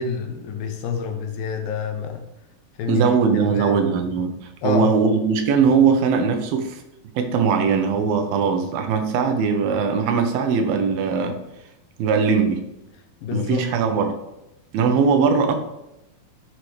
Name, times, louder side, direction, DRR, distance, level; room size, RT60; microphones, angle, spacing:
voice 1, 0.0-2.3 2.8-3.0 3.4-3.8 4.6-4.9 13.2-13.7, left 5 dB, 80° left, 5 dB, 2.8 m, -27 dB
voice 2, 2.9-4.4 4.6-6.8 7.2-11.4 12.0-12.6 13.3-14.2 14.7-15.6, right 5 dB, 90° right, 6 dB, 2.8 m, -20 dB
10.5 x 5.9 x 3.3 m, 0.89 s
omnidirectional pair, 4.1 m